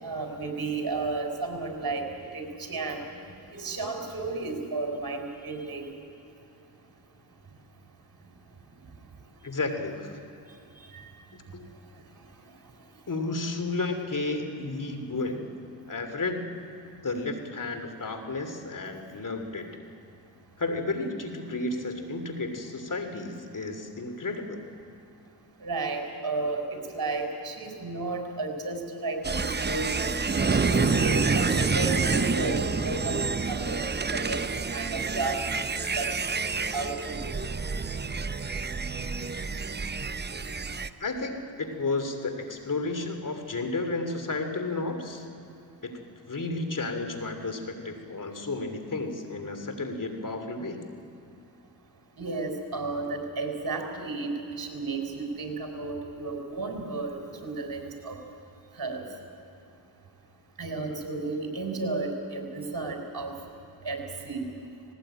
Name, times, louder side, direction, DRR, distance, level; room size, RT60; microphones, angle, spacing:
voice 1, 0.0-2.1 2.3-3.0 3.5-5.9 25.6-26.7 26.9-29.9 30.5-34.4 34.7-35.6 36.0-36.1 36.7-37.3 52.2-58.2 58.8-59.0 60.6-63.3 63.8-64.4, right 3 dB, 50° right, 3 dB, 4.6 m, -33 dB
voice 2, 9.4-10.1 11.5-11.7 13.1-15.5 15.9-16.6 17.0-19.7 20.6-24.6 41.0-45.2 45.8-45.9 46.3-50.8, left 3 dB, 45° left, 6 dB, 3.0 m, -32 dB
sound 1, 29.2-40.9, right 4 dB, 25° right, 0.8 m, -28 dB
18.5 x 18.5 x 9.0 m, 2.7 s
supercardioid pair, 50°, 45 cm